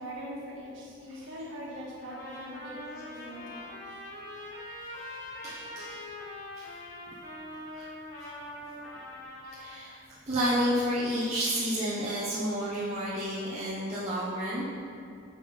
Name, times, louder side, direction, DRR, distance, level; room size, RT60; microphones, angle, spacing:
voice 1, 0.0-2.8 3.0-3.8, equal, 65° right, -5 dB, 1.7 m, -42 dB
Trumpet, 2.0-9.7, left 1 dB, 35° left, 1.7 m, -43 dB
voice 2, 4.8-6.0 6.6-6.8 7.7-7.8 8.2-8.3 8.8-9.1 9.5-10.0 10.3-14.6, equal, 30° right, -9 dB, 1.0 m, -31 dB
9.3 x 5.3 x 3.5 m, 2.4 s
head